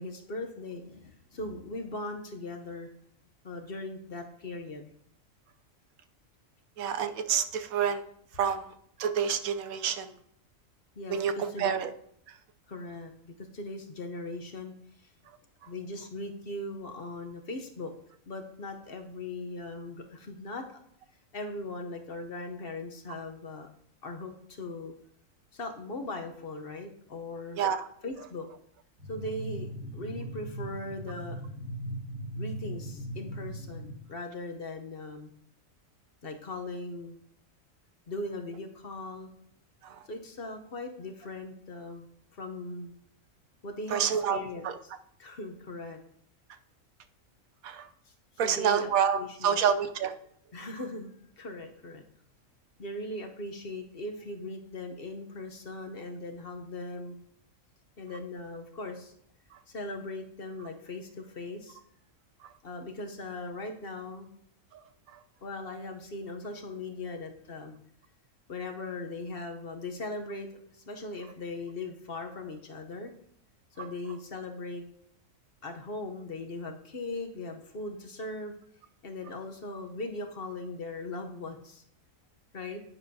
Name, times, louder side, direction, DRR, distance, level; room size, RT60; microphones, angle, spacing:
voice 1, 0.0-2.9 3.4-4.9 10.9-11.7 12.7-14.7 15.7-17.9 18.3-20.8 21.3-23.7 24.0-24.9 25.5-27.6 28.0-28.5 29.1-31.4 32.4-35.3 36.2-37.2 38.1-39.3 40.1-42.1 42.3-42.9 43.6-44.7 45.2-46.0 48.4-49.6 50.5-52.0 52.8-57.2 58.0-59.1 59.7-61.8 62.6-64.3 65.4-67.8 68.5-73.1 73.8-74.8 75.6-78.5 79.0-81.8 82.5-82.8, left 2 dB, 50° left, 5 dB, 1.0 m, -39 dB
voice 2, 6.8-8.0 8.4-8.7 9.0-10.1 11.1-11.3 11.6-11.9 27.6-27.8 43.9-44.4 44.6-44.7 47.6-47.8 48.4-50.1, right 8 dB, 85° right, 9 dB, 1.1 m, -27 dB
sound 1, 29.0-34.0, equal, 65° right, 2.3 m, -39 dB
10.0 x 9.8 x 2.7 m, 0.69 s
omnidirectional pair, 1.4 m